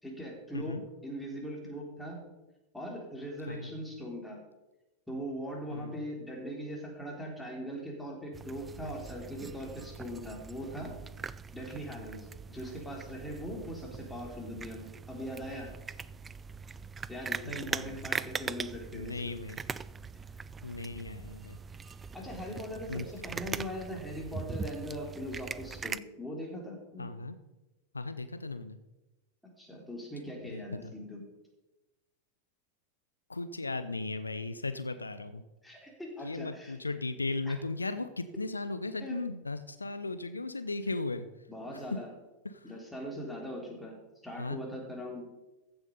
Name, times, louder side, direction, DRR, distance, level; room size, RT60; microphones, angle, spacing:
voice 1, 0.0-2.2 2.7-4.4 5.1-10.9 11.5-15.7 17.1-19.4 21.8-27.1 29.6-31.2 35.6-36.7 37.5-37.6 39.0-39.2 41.5-42.1 42.6-44.0 44.2-45.2, equal, 5° left, -1 dB, 3.4 m, -40 dB
voice 2, 5.7-6.0 17.4-18.0 18.9-19.6 20.6-21.6 22.9-23.1 27.0-27.4 27.9-28.8 30.4-30.9 33.3-35.4 36.2-41.3 41.7-42.0 42.4-42.7 44.4-44.6, left 3 dB, 80° left, 12 dB, 0.6 m, -37 dB
sound 1, 8.3-26.0, right 5 dB, 15° right, 0.3 m, -41 dB
15.0 x 7.1 x 5.4 m, 1.0 s
figure-of-eight pair, 90°, 0 cm